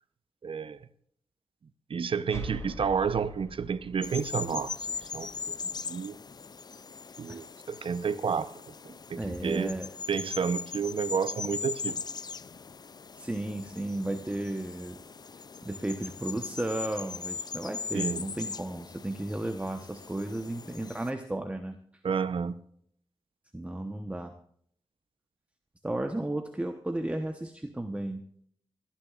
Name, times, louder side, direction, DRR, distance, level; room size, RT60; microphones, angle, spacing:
voice 1, 0.4-0.8 1.9-4.9 5.1-6.2 7.2-9.7 10.1-12.0 17.9-18.2 22.0-22.6, right 6 dB, 70° right, 0.8 m, -31 dB
sound 1, 2.3-5.8, left 1 dB, 30° left, 2.8 m, -45 dB
sound 2, 4.0-21.1, left 5 dB, 45° left, 0.4 m, -40 dB
voice 2, 9.1-9.9 13.2-15.0 15.6-21.8 23.5-24.3 25.8-28.3, right 1 dB, 15° right, 1.0 m, -34 dB
29.0 x 10.0 x 2.5 m
cardioid pair, 55°, 9 cm